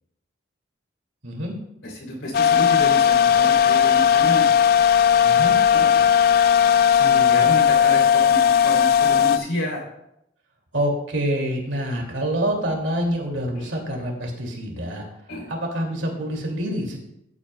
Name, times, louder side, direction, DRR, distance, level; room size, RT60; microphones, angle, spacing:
voice 1, 1.2-1.5 5.2-5.6 10.7-15.0 15.5-17.0, equal, 80° right, 1 dB, 2.4 m, -26 dB
voice 2, 1.8-4.5 5.7-6.1 6.9-9.8 13.6-13.7 15.3-15.5, left 1 dB, 90° left, -1 dB, 3.0 m, -30 dB
sound 1, 2.3-9.4, left 8 dB, 50° left, 0.3 m, -17 dB
14.5 x 8.7 x 2.2 m, 0.80 s
head